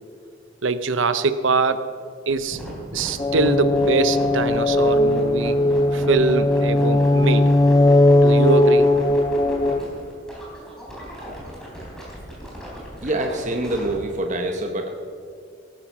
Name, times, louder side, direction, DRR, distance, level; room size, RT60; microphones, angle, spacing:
voice 1, 0.6-1.9 2.3-2.6 2.9-5.6 5.9-7.5 8.2-8.9, right 3 dB, 75° right, 12 dB, 0.7 m, -23 dB
sound 1, 2.3-13.9, equal, 5° left, 3.7 m, -36 dB
sound 2, 3.2-9.8, left 1 dB, 20° left, 0.4 m, -18 dB
voice 2, 13.0-14.9, right 1 dB, 40° right, 4 dB, 1.0 m, -25 dB
18.0 x 9.8 x 6.1 m, 2.3 s
head